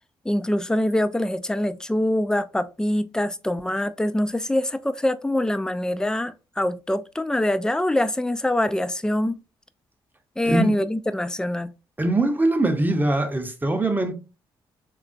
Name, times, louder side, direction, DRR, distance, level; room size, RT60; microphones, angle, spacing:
voice 1, 0.3-9.4 10.4-11.7, left 1 dB, 5° left, 0.3 m, -24 dB
voice 2, 10.4-10.8 12.0-14.1, right 2 dB, 15° right, 0.7 m, -22 dB
3.5 x 2.3 x 2.5 m
hypercardioid pair, 40°, 12 cm